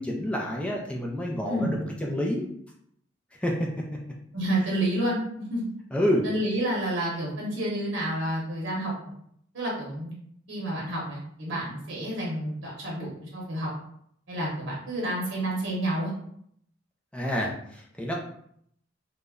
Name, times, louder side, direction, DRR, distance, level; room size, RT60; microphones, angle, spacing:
voice 1, 0.0-2.5 3.4-3.7 5.9-6.2 17.1-18.1, equal, 5° left, -2 dB, 0.3 m, -28 dB
voice 2, 1.5-1.8 4.3-5.2 5.5-5.7 6.2-8.9 9.5-10.1 10.5-13.7 14.3-16.1, right 1 dB, 70° right, -4 dB, 0.8 m, -29 dB
2.2 x 2.0 x 3.5 m, 0.68 s
head